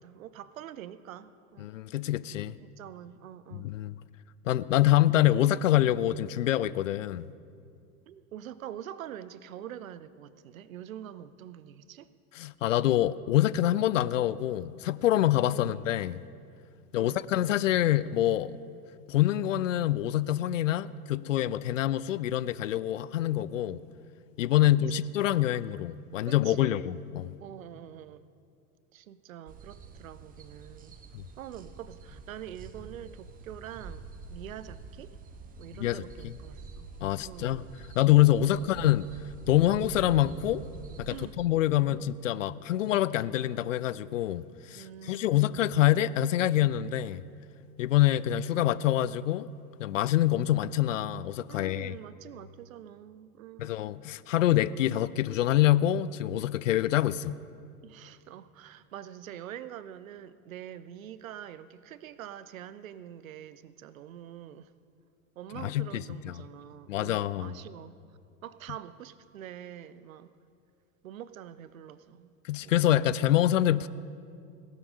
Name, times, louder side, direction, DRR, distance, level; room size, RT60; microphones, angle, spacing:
voice 1, 0.0-1.7 2.6-3.7 8.1-12.1 15.5-15.8 16.9-17.2 24.5-25.0 25.3-25.6 26.3-26.9 27.4-28.2 28.9-30.9 31.4-35.2 35.6-36.9 37.2-37.6 38.4-38.7 41.1-41.4 41.9-42.1 44.7-45.7 48.5-48.8 50.8-51.0 51.5-53.8 57.8-64.7 65.4-67.9 68.4-70.3 71.0-72.3 72.6-72.8, right 10 dB, 60° right, 0.7 m, -45 dB
voice 2, 1.6-2.6 3.5-3.9 4.5-7.3 12.3-16.2 16.9-18.6 19.1-23.8 24.4-27.3 31.1-31.2 35.8-36.3 37.0-37.6 38.0-39.1 39.5-40.6 41.0-47.2 47.8-49.5 49.8-52.0 53.6-57.4 65.6-66.4 66.9-67.5 72.4-73.9, left 13 dB, 55° left, 0.5 m, -26 dB
sound 1, 29.5-41.3, right 4 dB, 20° right, 0.9 m, -47 dB
17.5 x 11.5 x 5.3 m
figure-of-eight pair, 85°, 46 cm